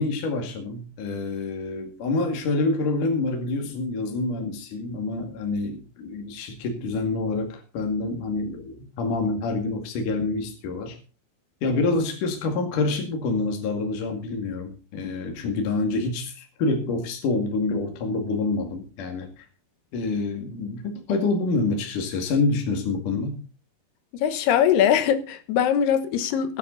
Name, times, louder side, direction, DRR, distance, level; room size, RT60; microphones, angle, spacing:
voice 1, 0.0-11.0 11.6-19.4 19.9-23.4, left 3 dB, 50° left, 3.1 m, -27 dB
voice 2, 24.1-26.6, left 9 dB, 70° left, 2.8 m, -21 dB
17.0 x 11.0 x 4.0 m
omnidirectional pair, 5.7 m